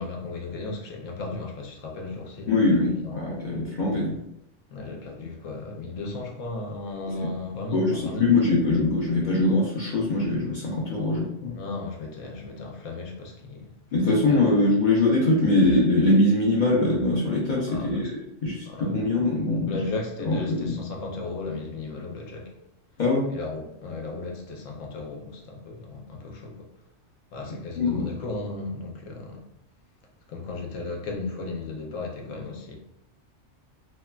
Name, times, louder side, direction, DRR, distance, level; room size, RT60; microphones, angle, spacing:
voice 1, 0.0-2.7 3.0-3.1 4.7-8.4 11.5-13.7 14.0-14.6 17.7-18.1 18.7-19.1 19.6-22.5 23.3-26.7 27.3-29.5 30.3-32.7, left 3 dB, 85° left, 1.0 m, -35 dB
voice 2, 2.5-4.2 7.2-7.3 7.7-11.6 13.9-18.2 18.4-19.7 20.2-20.7 23.0-23.2 27.8-28.1, left 2 dB, 55° left, 0.5 m, -22 dB
3.0 x 2.2 x 2.2 m
omnidirectional pair, 1.3 m